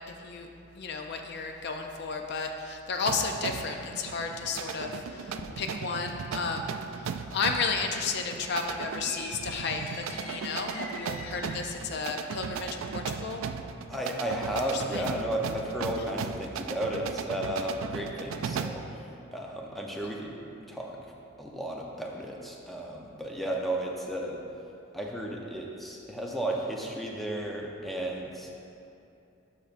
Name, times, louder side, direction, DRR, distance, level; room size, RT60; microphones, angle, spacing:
voice 1, 0.8-6.7 7.0-9.8 10.1-13.5 14.7-15.1, left 4 dB, 55° left, 4 dB, 0.4 m, -33 dB
sound 1, 3.1-18.9, right 6 dB, 75° right, 0.3 m, -37 dB
sound 2, 9.0-11.8, left 2 dB, 75° left, 0.8 m, -43 dB
voice 2, 13.9-19.0 19.3-20.3 20.7-21.0 21.4-24.4 24.9-28.6, right 1 dB, ahead, -2 dB, 0.6 m, -33 dB
12.0 x 5.8 x 2.5 m, 2.7 s
head